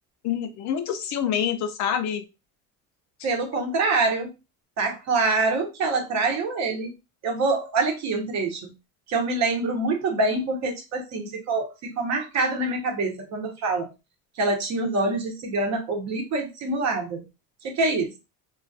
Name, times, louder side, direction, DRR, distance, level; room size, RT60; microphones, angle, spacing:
voice 1, 0.2-2.2, left 8 dB, 50° left, 0.4 m, -26 dB
voice 2, 3.2-4.3 4.8-6.9 7.2-8.7 9.1-13.9 14.4-17.2 17.6-18.2, right 3 dB, 50° right, 0.8 m, -25 dB
2.3 x 2.3 x 2.5 m
cardioid pair, 145°, 37 cm